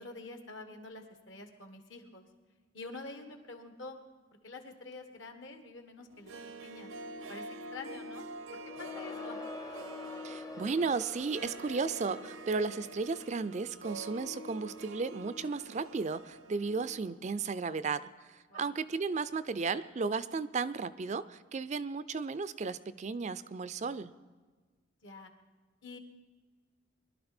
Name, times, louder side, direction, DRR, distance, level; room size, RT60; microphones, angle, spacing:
voice 1, 0.0-2.3 2.7-4.0 4.4-6.3 6.6-6.9 7.3-8.2 8.5-9.4 18.5-18.7 25.0-25.3 25.8-26.0, left 3 dB, 65° left, 6 dB, 1.7 m, -47 dB
Harp, 6.1-17.1 17.4-17.5, equal, 85° right, 0.8 m, -46 dB
Crowd, 8.6-13.6, left 1 dB, 15° left, 0.7 m, -48 dB
voice 2, 10.2-24.1, right 4 dB, 35° right, 14 dB, 0.4 m, -34 dB
21.5 x 12.0 x 4.4 m, 1.4 s
head